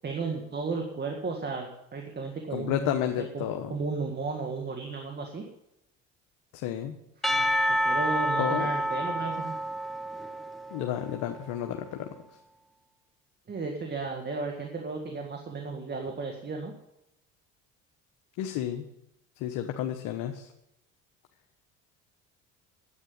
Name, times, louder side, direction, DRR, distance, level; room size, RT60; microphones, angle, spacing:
voice 1, 0.0-5.5 7.7-9.6 13.5-16.7, right 4 dB, 30° right, 2 dB, 2.0 m, -34 dB
voice 2, 2.5-3.7 6.5-7.0 8.4-8.7 10.7-12.1 18.4-18.9 19.4-20.5, left 10 dB, 75° left, 4 dB, 1.2 m, -31 dB
Percussion / Church bell, 7.2-11.4, equal, ahead, 1.4 m, -29 dB
10.0 x 8.9 x 9.7 m, 0.86 s
supercardioid pair, 85°, 31 cm